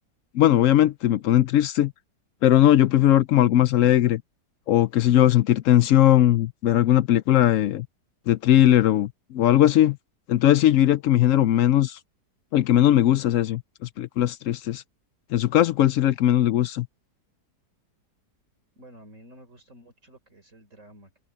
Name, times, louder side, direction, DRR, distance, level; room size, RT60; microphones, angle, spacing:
voice 1, 0.3-1.9 2.4-4.2 4.7-7.9 8.3-10.0 10.3-12.0 12.5-14.8 15.3-16.9, left 12 dB, 70° left, 0.8 m, -19 dB
voice 2, 18.7-21.2, equal, 45° right, 4.7 m, -51 dB
open air
omnidirectional pair, 1.8 m